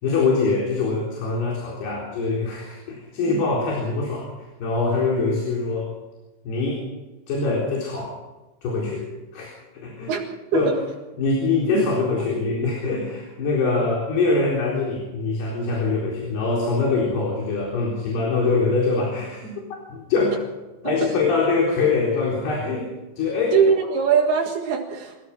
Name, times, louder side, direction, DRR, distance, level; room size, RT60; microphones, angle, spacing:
voice 1, 0.0-4.3 4.6-5.9 6.4-6.8 7.3-8.2 8.6-10.1 10.5-10.7 11.2-19.5 19.9-20.4 20.8-22.9 23.2-23.6, left 3 dB, 80° left, -2 dB, 6.1 m, -23 dB
voice 2, 23.5-25.2, right 6 dB, 75° right, -1 dB, 3.8 m, -21 dB
27.5 x 15.5 x 6.1 m, 1.1 s
omnidirectional pair, 4.6 m